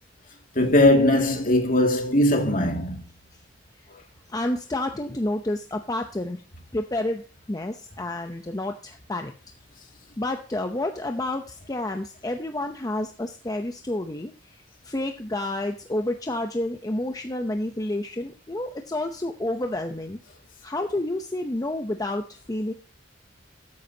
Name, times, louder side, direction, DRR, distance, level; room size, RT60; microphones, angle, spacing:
voice 1, 0.6-3.0, left 1 dB, 45° left, 2.3 m, -20 dB
voice 2, 4.3-6.4 6.7-7.2 7.5-9.3 10.2-20.2 20.6-22.7, left 1 dB, 20° left, 0.7 m, -29 dB
13.5 x 9.5 x 2.8 m
head